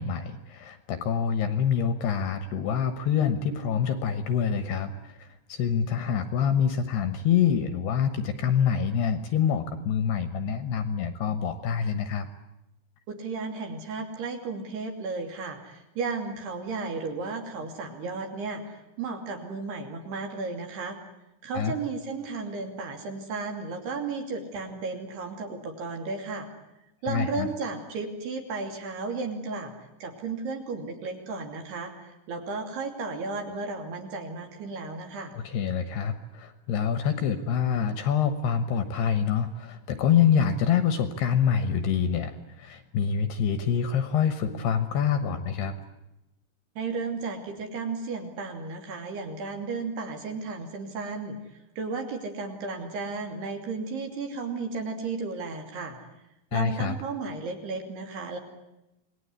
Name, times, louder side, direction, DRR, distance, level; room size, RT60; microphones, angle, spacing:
voice 1, 0.0-12.3 21.5-21.7 27.1-27.5 35.3-45.8 56.5-57.0, left 7 dB, 70° left, 10 dB, 2.7 m, -26 dB
voice 2, 13.1-21.0 21.4-26.5 27.0-29.7 30.0-35.3 46.8-56.0 56.5-58.4, right 4 dB, 55° right, 3 dB, 4.3 m, -34 dB
27.5 x 20.0 x 9.8 m, 0.92 s
omnidirectional pair, 6.0 m